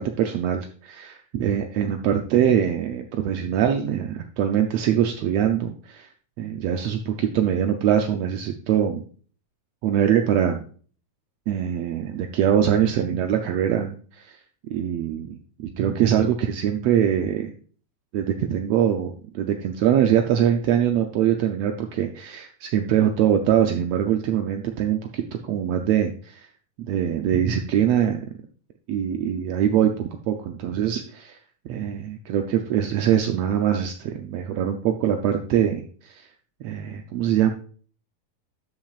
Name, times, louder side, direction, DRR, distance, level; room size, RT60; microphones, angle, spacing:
voice 1, 0.0-6.1 6.4-9.0 9.8-10.6 11.5-14.4 14.7-17.5 18.1-26.5 26.9-28.2 28.9-31.4 31.6-36.3 36.6-37.5, right 9 dB, 85° right, 5 dB, 1.4 m, -23 dB
12.5 x 7.4 x 2.4 m, 0.43 s
omnidirectional pair, 3.7 m